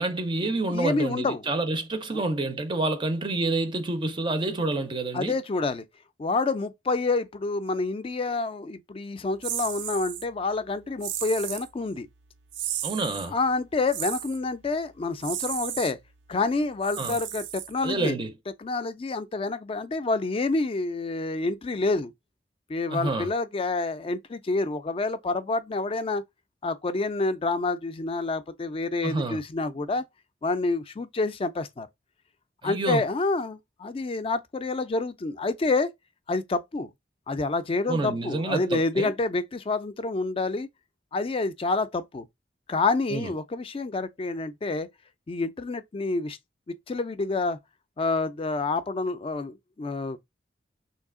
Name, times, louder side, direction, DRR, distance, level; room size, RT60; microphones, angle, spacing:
voice 1, 0.0-5.3 12.8-13.4 17.0-17.2 17.8-18.3 22.9-23.3 29.0-29.4 32.6-33.0 37.9-39.1 43.1-43.3, right 2 dB, 25° right, 0.4 m, -28 dB
voice 2, 0.7-1.4 2.1-2.2 5.1-5.8 6.2-12.1 13.3-16.0 16.3-18.2 18.6-22.1 22.7-26.2 26.6-30.0 30.4-31.9 32.6-35.9 36.3-36.9 37.3-40.7 41.1-42.3 42.7-44.9 45.3-46.4 46.7-47.6 48.0-50.2, left 3 dB, 30° left, 0.4 m, -28 dB
Servo motor, 9.4-10.3 11.0-11.7 12.5-13.3 13.9-14.4 15.2-15.9 16.8-18.0, right 11 dB, 85° right, 0.4 m, -34 dB
3.2 x 2.7 x 3.6 m
head